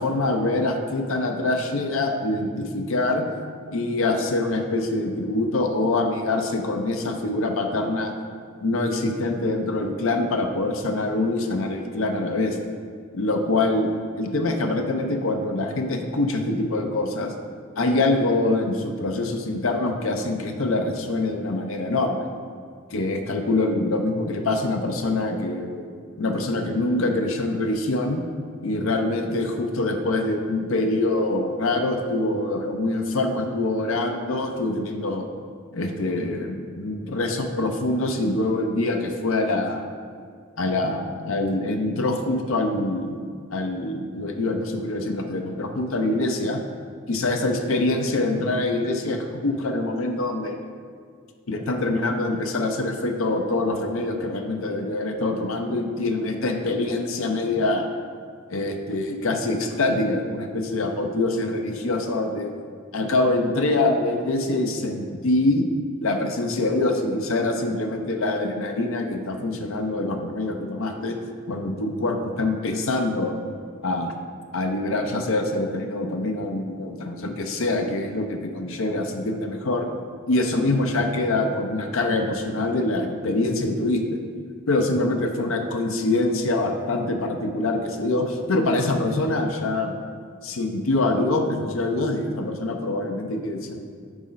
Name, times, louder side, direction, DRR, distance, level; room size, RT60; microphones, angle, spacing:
voice 1, 0.0-3.2 3.7-8.1 8.6-12.6 13.1-13.9 14.2-17.3 17.8-22.3 22.9-25.9 26.2-28.2 28.6-35.3 35.7-39.9 40.6-43.3 43.5-46.6 47.1-50.6 51.5-57.9 58.5-62.5 62.9-65.7 66.0-71.2 71.5-73.4 73.8-74.1 74.5-79.9 80.3-84.2 84.7-89.9 90.4-93.8, left 2 dB, 80° left, 4 dB, 0.6 m, -24 dB
6.3 x 4.1 x 5.1 m, 2.1 s
head